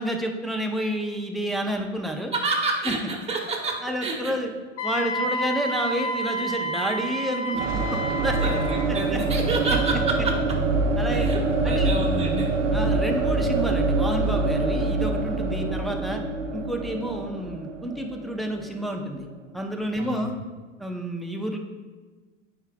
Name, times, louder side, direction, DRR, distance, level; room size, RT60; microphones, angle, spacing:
voice 1, 0.0-2.3 2.9-3.0 3.8-4.5 4.8-8.4 9.1-9.2 11.0-11.3 11.6-12.0 12.7-16.2 16.5-19.3 19.5-20.3 20.8-21.6, equal, ahead, 2 dB, 0.6 m, -29 dB
voice 2, 2.3-4.3 8.4-10.3 11.1-12.5 20.0-20.3, right 3 dB, 15° right, -1 dB, 1.5 m, -29 dB
Wind instrument woodwind instrument, 4.8-8.9, right 1 dB, 40° left, 1.0 m, -29 dB
sound 1, 7.5-19.3, right 3 dB, 85° right, 0.8 m, -25 dB
8.9 x 4.9 x 2.3 m, 1.3 s
hypercardioid pair, 95°, 37 cm